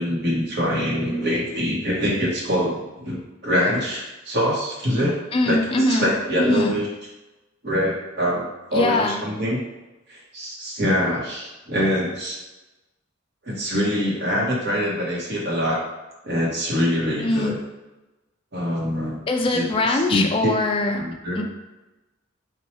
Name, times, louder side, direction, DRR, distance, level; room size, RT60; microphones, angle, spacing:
voice 1, 0.0-5.2 5.4-6.9 7.6-8.4 8.7-9.6 10.1-12.4 13.4-15.8 16.2-17.5 18.5-19.2 19.5-20.5 21.0-21.4, equal, 55° right, -4 dB, 0.9 m, -24 dB
voice 2, 5.3-6.1 6.4-6.8 8.7-9.2 17.2-17.6 19.3-21.0 21.4-21.5, left 2 dB, 25° left, 3 dB, 0.3 m, -22 dB
2.9 x 2.2 x 4.2 m, 1.0 s
head